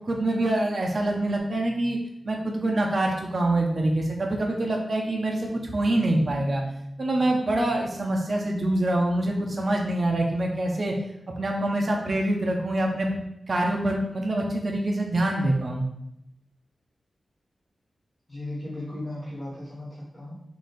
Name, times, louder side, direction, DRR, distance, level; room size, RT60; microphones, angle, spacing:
voice 1, 0.0-2.0 2.2-6.6 7.0-10.9 11.4-15.9, right 1 dB, 40° right, 0 dB, 0.5 m, -25 dB
voice 2, 18.3-20.3, left 1 dB, 20° left, -10 dB, 1.1 m, -36 dB
3.8 x 2.6 x 3.9 m, 0.79 s
wide cardioid pair, 160°, 0 cm